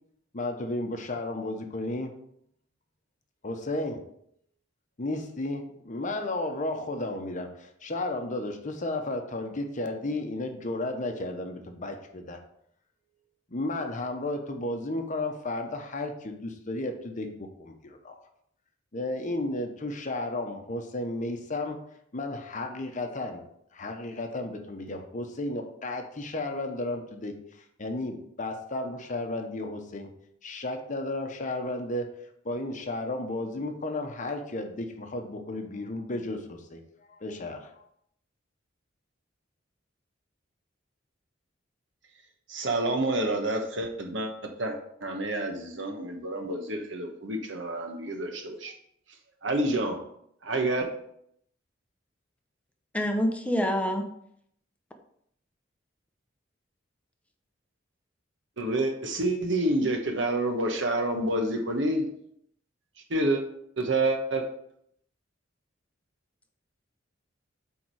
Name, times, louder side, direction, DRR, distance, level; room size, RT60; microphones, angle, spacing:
voice 1, 0.3-2.2 3.4-4.0 5.0-12.4 13.5-18.1 18.9-21.8 22.1-23.4 23.7-27.4 27.8-30.1 30.4-32.1 32.4-36.8 37.1-37.8, left 2 dB, 40° left, 5 dB, 0.9 m, -33 dB
voice 2, 42.5-44.3 44.6-48.7 49.4-50.0 50.4-50.9 58.6-62.1 63.1-63.4 63.8-64.5, right 2 dB, 70° right, 4 dB, 1.2 m, -28 dB
voice 3, 52.9-54.0, equal, 5° left, 3 dB, 0.7 m, -26 dB
8.4 x 3.7 x 4.7 m, 0.70 s
head